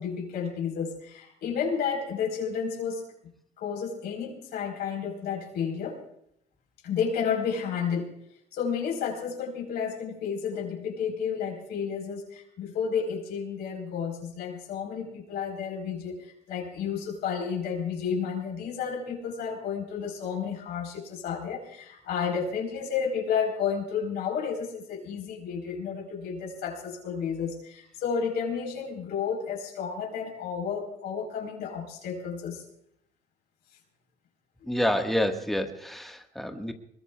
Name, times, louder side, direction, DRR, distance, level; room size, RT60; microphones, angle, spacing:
voice 1, 0.0-3.0 3.6-6.0 6.8-8.2 8.5-32.6, left 6 dB, 75° left, 0 dB, 4.3 m, -31 dB
voice 2, 34.6-36.7, left 1 dB, ahead, 4 dB, 1.6 m, -28 dB
25.0 x 21.5 x 2.4 m, 0.73 s
cardioid pair, 110°, 17 cm